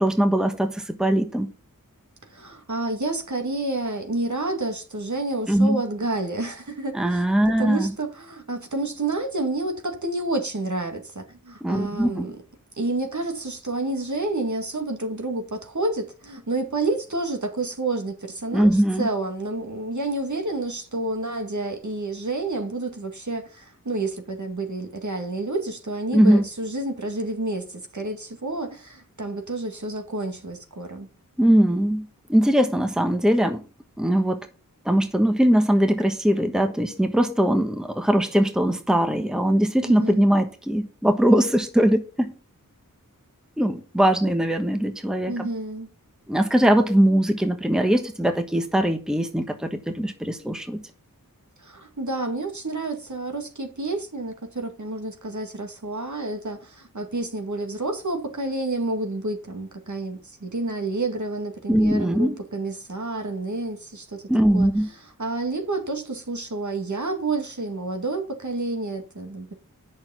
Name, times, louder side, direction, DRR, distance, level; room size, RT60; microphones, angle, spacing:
voice 1, 0.0-1.5 5.5-5.8 6.9-7.9 11.6-12.3 18.5-19.1 26.1-26.4 31.4-33.6 34.0-34.4 34.8-42.3 43.6-45.5 46.3-50.8 61.7-62.4 64.3-64.9, right 1 dB, ahead, 1.3 m, -21 dB
voice 2, 2.3-7.2 7.6-12.4 12.8-31.1 39.9-40.2 45.3-45.9 51.6-64.3 64.5-69.5, right 2 dB, 55° right, 2.1 m, -29 dB
8.7 x 6.5 x 5.7 m
wide cardioid pair, 55°, 34 cm